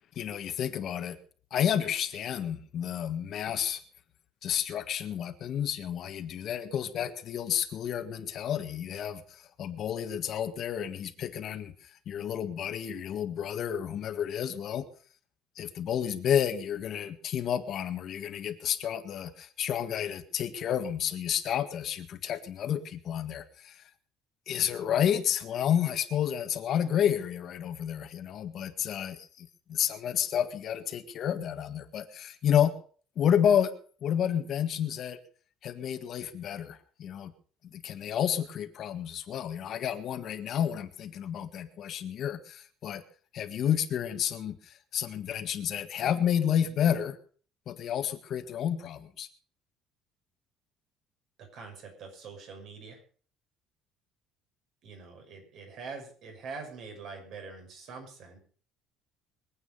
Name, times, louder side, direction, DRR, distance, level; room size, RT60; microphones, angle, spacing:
voice 1, 0.1-1.2 1.5-3.8 4.4-14.9 15.5-23.9 24.5-32.7 33.1-33.7 34.0-35.2 35.6-37.3 37.7-43.0 43.3-47.2 47.7-49.3, left 9 dB, 45° left, 8 dB, 1.6 m, -30 dB
voice 2, 51.5-53.0 54.8-58.4, right 4 dB, 55° right, 3 dB, 6.3 m, -44 dB
23.5 x 8.9 x 5.5 m, 0.43 s
cardioid pair, 155°, 0 cm